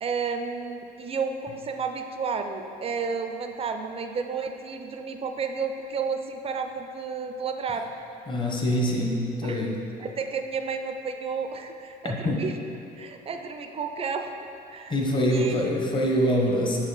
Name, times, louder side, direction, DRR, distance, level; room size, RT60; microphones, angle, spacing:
voice 1, 0.0-7.9 9.4-9.7 10.0-12.5 13.0-14.3 14.7-15.0 15.3-15.7, right 5 dB, 35° right, 6 dB, 0.4 m, -32 dB
voice 2, 8.3-9.8 12.0-12.4 14.9-16.8, equal, 30° left, -1 dB, 0.9 m, -24 dB
6.7 x 4.4 x 4.0 m, 2.7 s
cardioid pair, 110°, 17 cm